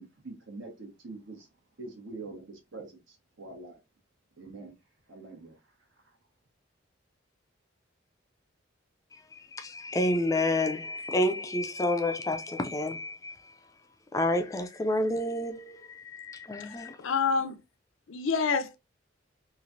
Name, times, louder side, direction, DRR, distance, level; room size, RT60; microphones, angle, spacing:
voice 1, 0.0-1.5 1.8-3.8 4.4-4.7 5.1-5.6 5.9-6.2, right 3 dB, 80° right, 1.2 m, -45 dB
voice 2, 9.5-13.3 14.1-17.0, left 1 dB, 15° left, 0.3 m, -29 dB
voice 3, 17.0-17.6 18.1-18.8, left 5 dB, 85° left, 0.5 m, -27 dB
3.1 x 2.4 x 2.5 m
head